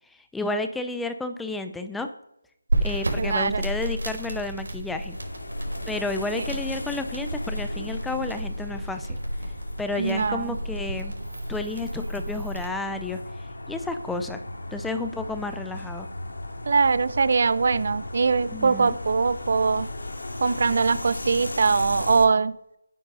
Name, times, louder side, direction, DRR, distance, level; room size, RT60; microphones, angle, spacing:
voice 1, 0.3-2.1 2.8-5.2 5.9-9.2 9.8-11.1 11.5-13.2 13.7-14.4 14.7-16.1 18.5-18.9, left 2 dB, ahead, 7 dB, 0.5 m, -31 dB
sound 1, 2.7-12.7, right 1 dB, 85° right, 5.0 m, -32 dB
voice 2, 3.2-3.7 6.3-6.4 10.0-10.6 16.7-19.9 20.4-22.5, right 4 dB, 40° right, 16 dB, 0.6 m, -22 dB
sound 2, 5.1-22.3, left 2 dB, 85° left, 2.4 m, -37 dB
10.0 x 9.1 x 5.5 m, 0.81 s
figure-of-eight pair, 170°, 0 cm